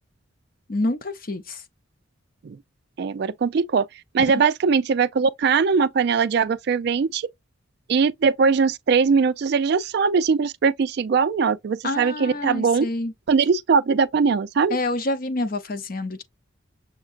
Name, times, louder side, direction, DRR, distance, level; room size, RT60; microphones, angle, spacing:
voice 1, 0.7-1.6 11.8-13.1 14.7-16.2, left 2 dB, 45° left, 0.7 m, -27 dB
voice 2, 3.0-3.9 4.1-7.3 7.9-12.8 13.3-14.8, right 5 dB, 50° right, 0.3 m, -21 dB
6.5 x 2.3 x 2.5 m
head